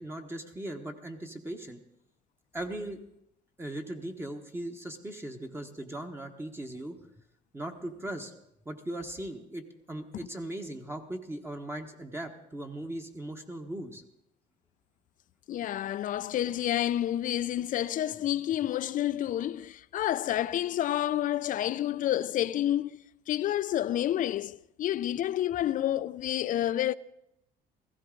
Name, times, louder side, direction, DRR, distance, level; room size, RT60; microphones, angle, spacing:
voice 1, 0.0-1.8 2.5-3.0 3.6-6.9 7.5-8.3 8.6-14.0, right 1 dB, 15° right, 1.2 m, -38 dB
voice 2, 15.5-26.9, left 12 dB, 50° left, 0.4 m, -29 dB
16.0 x 14.5 x 3.8 m
cardioid pair, 110°, 17 cm